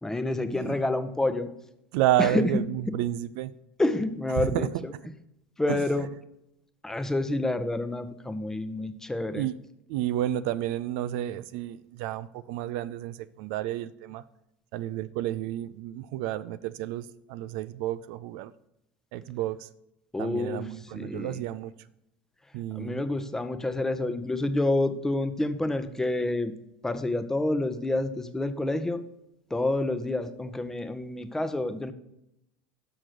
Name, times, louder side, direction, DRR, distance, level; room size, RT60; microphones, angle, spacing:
voice 1, 0.0-1.5 2.2-2.5 2.9-3.0 3.8-4.9 5.6-6.2 6.8-9.4 20.1-21.4 22.7-26.5 26.8-29.0 29.5-31.9, left 2 dB, 10° left, 0.7 m, -28 dB
voice 2, 1.9-3.5 4.4-4.7 5.7-6.1 9.3-9.6 9.9-14.2 14.7-18.5 19.1-19.7 20.2-21.7 22.5-23.0, right 13 dB, 70° right, 0.4 m, -31 dB
6.2 x 6.0 x 6.5 m
supercardioid pair, 100°, 6 cm